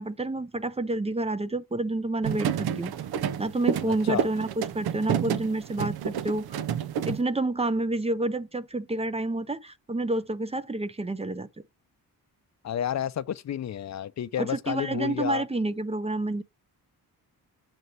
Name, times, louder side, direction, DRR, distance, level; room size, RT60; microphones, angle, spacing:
voice 1, 0.0-2.9 3.4-6.5 7.1-11.5 14.4-16.4, right 2 dB, 15° right, 0.5 m, -29 dB
sound 1, 2.2-7.2, right 9 dB, 85° right, 0.7 m, -30 dB
voice 2, 12.6-15.4, left 10 dB, 50° left, 0.5 m, -30 dB
7.9 x 2.9 x 5.4 m
cardioid pair, 100°, 37 cm